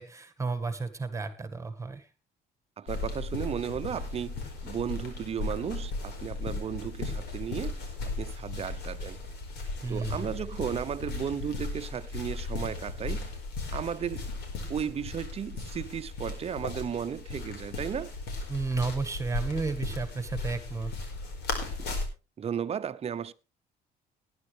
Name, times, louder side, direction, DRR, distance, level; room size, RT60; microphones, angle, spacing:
voice 1, 0.0-2.0 9.8-10.3 18.5-20.9, right 4 dB, 15° right, 1.8 m, -32 dB
voice 2, 2.8-4.3 4.6-9.2 9.9-13.3 13.7-14.3 14.7-18.1 21.8-22.0 22.4-23.3, right 8 dB, 35° right, 0.8 m, -34 dB
sound 1, 2.9-22.0, left 3 dB, 80° left, 4.7 m, -36 dB
19.0 x 10.5 x 3.4 m
cardioid pair, 110°, 17 cm